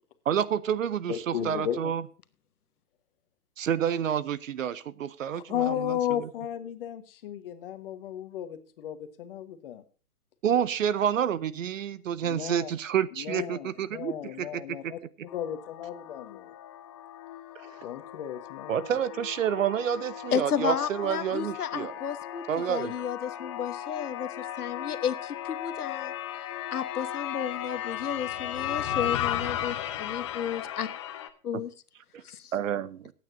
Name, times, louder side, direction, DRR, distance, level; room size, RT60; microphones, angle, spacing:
voice 1, 0.3-2.0 3.6-6.3 10.4-14.9 18.7-21.9 22.5-22.9 32.1-32.2 32.5-33.1, right 9 dB, 55° right, 0.9 m, -29 dB
voice 2, 1.1-1.9 5.3-9.8 12.2-12.7 13.2-15.0 15.3-16.5 17.8-18.8, left 11 dB, 40° left, 1.5 m, -34 dB
sound 1, 15.3-31.3, left 11 dB, 20° left, 0.6 m, -36 dB
voice 3, 20.3-22.4 22.7-26.1 26.7-30.9 31.4-31.7 32.2-32.5, left 8 dB, 75° left, 1.2 m, -32 dB
22.0 x 9.2 x 2.7 m
hypercardioid pair, 145°, 45 cm